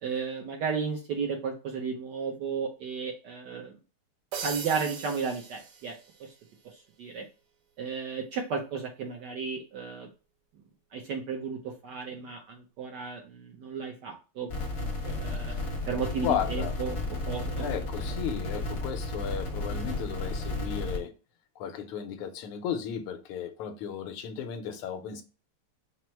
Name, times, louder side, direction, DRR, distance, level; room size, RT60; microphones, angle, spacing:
voice 1, 0.0-3.7 4.4-5.9 6.2-6.3 7.0-7.2 7.8-10.1 10.9-14.5 15.0-15.5 15.9-17.8, right 5 dB, 70° right, 1.0 m, -34 dB
sound 1, 4.3-6.4, right 6 dB, 85° right, 1.7 m, -39 dB
sound 2, 14.5-21.0, left 2 dB, 45° left, 0.8 m, -33 dB
voice 2, 16.2-16.7 17.6-21.1 21.6-25.2, left 8 dB, 85° left, 1.6 m, -34 dB
4.6 x 2.0 x 4.3 m
omnidirectional pair, 2.4 m